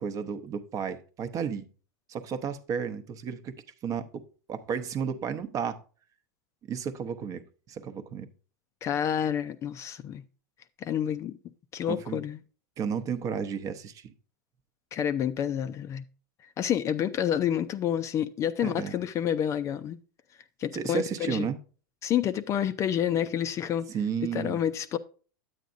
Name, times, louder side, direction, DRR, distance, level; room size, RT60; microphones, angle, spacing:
voice 1, 0.0-1.7 2.1-3.5 3.8-4.2 4.5-5.8 6.7-7.4 7.7-8.3 11.9-12.2 12.8-14.1 18.6-19.0 20.7-21.6 23.9-24.6, right 7 dB, 35° right, 0.8 m, -32 dB
voice 2, 8.8-10.2 10.8-11.4 11.7-12.4 14.9-16.0 16.6-20.0 20.6-21.5 22.0-23.9 24.3-25.0, left 9 dB, 30° left, 0.4 m, -29 dB
9.3 x 8.1 x 2.6 m
supercardioid pair, 125°, 10 cm